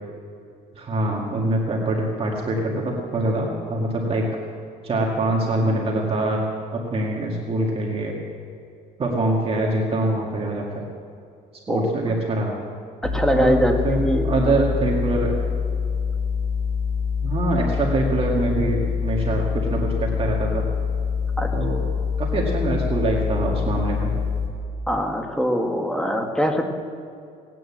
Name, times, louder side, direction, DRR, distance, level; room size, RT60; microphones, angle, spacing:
voice 1, 0.8-4.4 4.8-6.4 6.7-8.2 9.0-10.8 11.7-12.6 13.3-13.6 13.8-15.3 17.2-20.6 21.5-21.8 22.2-24.1, right 2 dB, 35° right, -2 dB, 2.1 m, -24 dB
sound 1, 13.0-24.5, left 6 dB, 75° left, 4.2 m, -25 dB
voice 2, 13.0-14.4 21.4-21.7 24.9-26.6, equal, 5° left, 3 dB, 1.7 m, -22 dB
18.5 x 9.3 x 7.4 m, 2.5 s
cardioid pair, 110°, 17 cm